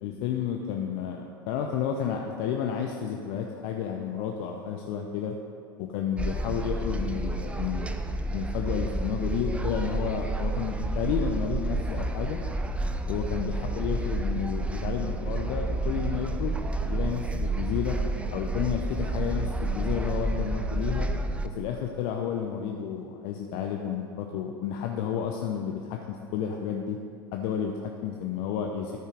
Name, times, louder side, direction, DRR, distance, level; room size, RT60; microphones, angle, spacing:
voice 1, 0.0-5.3 5.8-8.0 8.3-12.4 13.1-18.0 18.3-21.1 21.4-27.0 27.3-29.0, left 8 dB, 50° left, 2 dB, 0.8 m, -31 dB
sound 1, 6.2-21.5, right 2 dB, 10° right, 0.5 m, -30 dB
13.0 x 5.4 x 5.1 m, 2.3 s
figure-of-eight pair, 80°, 12 cm